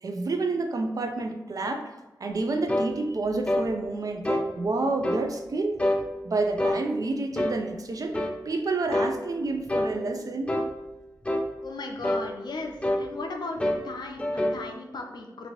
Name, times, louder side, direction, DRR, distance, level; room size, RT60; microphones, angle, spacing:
voice 1, 0.0-1.9 2.2-5.8 6.2-8.2 8.4-10.5, right 3 dB, 55° right, 5 dB, 0.4 m, -29 dB
sound 1, 2.7-2.9 3.5-3.7 4.2-4.5 5.0-5.3 5.8-6.0 6.6-6.8 7.3-7.6 8.1-8.4 8.9-9.1 9.7-10.0 10.5-10.7 11.2-11.5 12.0-12.3 12.8-13.1 13.6-13.9 14.2-14.6, left 1 dB, 15° left, 0.3 m, -26 dB
voice 2, 11.6-15.5, left 2 dB, 80° left, 3 dB, 0.5 m, -37 dB
2.9 x 2.6 x 2.9 m, 1.0 s
wide cardioid pair, 75°, 7 cm